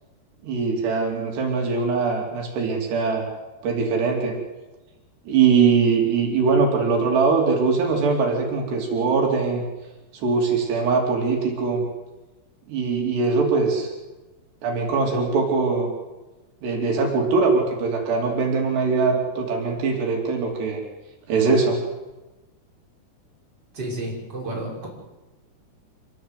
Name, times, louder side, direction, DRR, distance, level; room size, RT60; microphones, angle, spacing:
voice 1, 0.4-3.3 3.6-4.4 5.3-9.6 10.1-11.8 12.7-13.9 14.6-15.9 16.6-20.8 21.3-21.8, right 4 dB, 75° right, 0 dB, 5.1 m, -22 dB
voice 2, 23.7-24.9, right 1 dB, 25° right, -3 dB, 6.4 m, -31 dB
26.0 x 19.0 x 8.3 m, 1.1 s
omnidirectional pair, 4.8 m